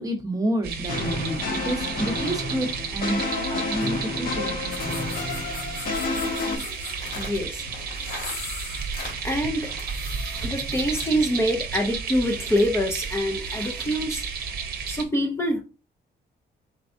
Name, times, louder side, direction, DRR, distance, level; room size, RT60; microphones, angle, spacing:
voice 1, 0.0-3.2 3.5-4.6, right 1 dB, 20° right, 0.9 m, -29 dB
sound 1, 0.6-15.0, right 5 dB, 50° right, 0.8 m, -33 dB
sound 2, 0.9-6.6, left 3 dB, 50° left, 1.2 m, -29 dB
sound 3, 4.7-11.3, left 3 dB, 85° left, 2.1 m, -39 dB
voice 2, 7.2-7.6 9.2-9.7 10.1-14.3 14.9-15.6, equal, 15° left, 0.5 m, -25 dB
4.6 x 4.3 x 2.6 m
cardioid pair, 150°, 19 cm